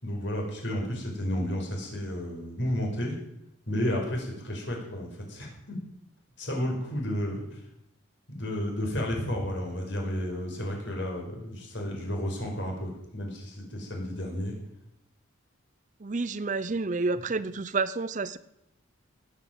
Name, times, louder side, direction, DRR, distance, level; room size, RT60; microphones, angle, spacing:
voice 1, 0.0-3.2 3.7-5.8 6.4-7.6 8.3-14.5, equal, 60° left, 1 dB, 5.2 m, -32 dB
voice 2, 16.0-18.4, right 3 dB, 40° right, 15 dB, 0.6 m, -29 dB
18.5 x 8.7 x 7.8 m, 0.81 s
head